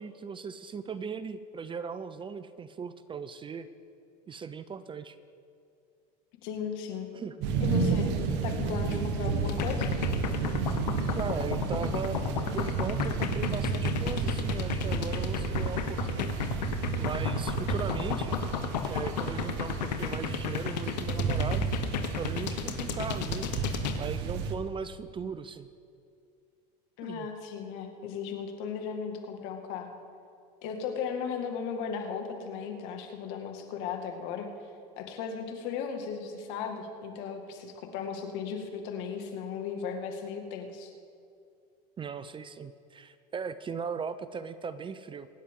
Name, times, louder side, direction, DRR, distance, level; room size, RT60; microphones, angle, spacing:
voice 1, 0.0-3.7 4.3-5.2 7.1-7.4 11.1-16.3 17.0-18.4 18.9-21.7 21.9-25.7 27.0-27.3 42.0-45.3, right 6 dB, 25° right, 13 dB, 0.6 m, -38 dB
voice 2, 6.4-7.1 7.6-8.1 8.4-9.9 27.0-30.0 30.6-34.5 35.0-40.9, left 6 dB, 65° left, 4 dB, 2.0 m, -36 dB
sound 1, 7.4-24.5, right 5 dB, 60° right, 1.4 m, -31 dB
sound 2, 9.5-24.0, left 9 dB, 90° left, 1.1 m, -33 dB
24.0 x 10.0 x 3.7 m, 2.4 s
supercardioid pair, 100°, 21 cm